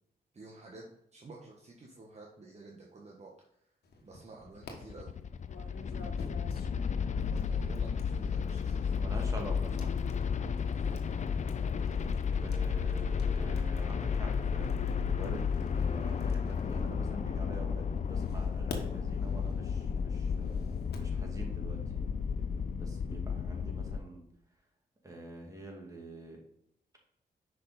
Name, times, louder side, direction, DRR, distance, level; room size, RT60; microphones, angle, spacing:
voice 1, 0.3-0.9 1.1-3.3 4.0-5.2 7.3-9.1 10.7-11.0, right 3 dB, 40° right, -2 dB, 1.3 m, -51 dB
sound 1, 3.8-4.7 5.4-17.5 18.1-21.2, left 4 dB, 80° left, 1.4 m, -51 dB
sound 2, 4.6-24.0, left 6 dB, 45° left, 0.5 m, -33 dB
voice 2, 9.0-9.9 12.4-22.1 22.7-24.2 25.0-26.4, right 2 dB, 20° right, -1 dB, 2.5 m, -46 dB
6.3 x 5.2 x 4.1 m, 0.76 s
cardioid pair, 65°, 17 cm